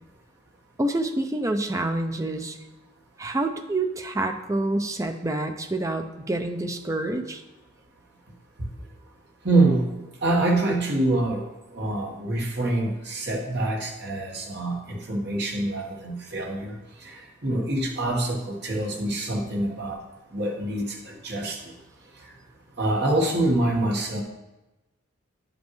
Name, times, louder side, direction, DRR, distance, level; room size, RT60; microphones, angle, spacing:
voice 1, 0.8-2.6 3.2-7.4, right 2 dB, 15° right, 6 dB, 0.4 m, -27 dB
voice 2, 9.4-9.9 10.2-11.5 11.7-16.7 17.0-20.0 20.3-21.6 22.8-24.2, right 2 dB, 55° right, -1 dB, 1.3 m, -25 dB
10.0 x 5.2 x 3.1 m, 1.0 s
head